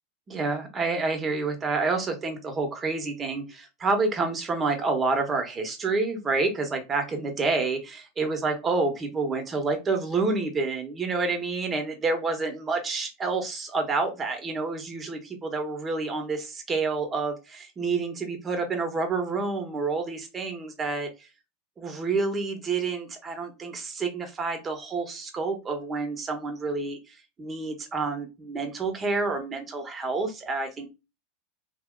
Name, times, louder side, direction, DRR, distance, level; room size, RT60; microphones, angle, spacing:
voice 1, 0.3-21.3 21.8-30.9, right 3 dB, 25° right, 5 dB, 1.1 m, -28 dB
3.6 x 2.7 x 2.3 m, 0.27 s
hypercardioid pair, 90°, 0 cm